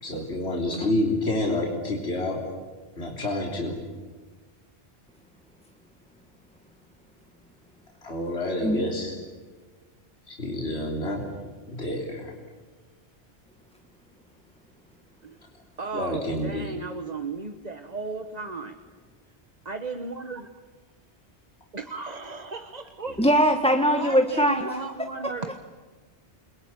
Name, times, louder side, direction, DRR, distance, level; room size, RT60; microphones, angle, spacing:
voice 1, 0.0-2.4 3.0-3.8 8.0-9.2 10.3-11.2 11.7-12.3 15.9-16.7, left 1 dB, 70° left, 0 dB, 3.9 m, -28 dB
voice 2, 15.8-18.8 19.6-20.5 21.7-23.2 23.9-25.6, right 3 dB, 40° right, 7 dB, 1.3 m, -35 dB
voice 3, 23.2-24.6, equal, 5° left, 4 dB, 1.4 m, -21 dB
29.5 x 22.5 x 8.9 m, 1.4 s
omnidirectional pair, 1.1 m